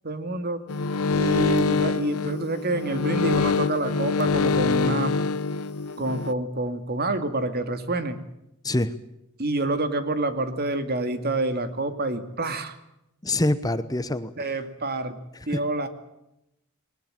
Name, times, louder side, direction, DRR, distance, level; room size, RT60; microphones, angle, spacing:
voice 1, 0.0-0.7 1.1-5.2 6.0-8.2 9.4-12.8 14.4-15.2 15.5-15.9, right 2 dB, 45° right, 9 dB, 2.3 m, -27 dB
sound 1, 0.7-6.3, left 4 dB, 85° left, 0.8 m, -25 dB
voice 2, 8.6-8.9 13.2-14.5 15.5-15.7, left 1 dB, 15° left, 12 dB, 0.9 m, -25 dB
21.0 x 20.0 x 9.0 m, 0.85 s
head